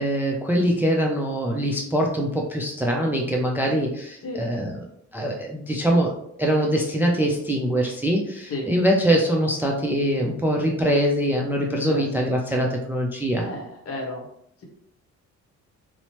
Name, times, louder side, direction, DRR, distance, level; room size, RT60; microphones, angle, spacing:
voice 1, 0.0-4.8 5.1-6.1 6.4-13.4, equal, 5° right, 0 dB, 0.3 m, -23 dB
voice 2, 13.4-14.2, left 2 dB, 50° left, 0 dB, 0.9 m, -32 dB
2.8 x 2.0 x 2.9 m, 0.72 s
cardioid pair, 90°, 30 cm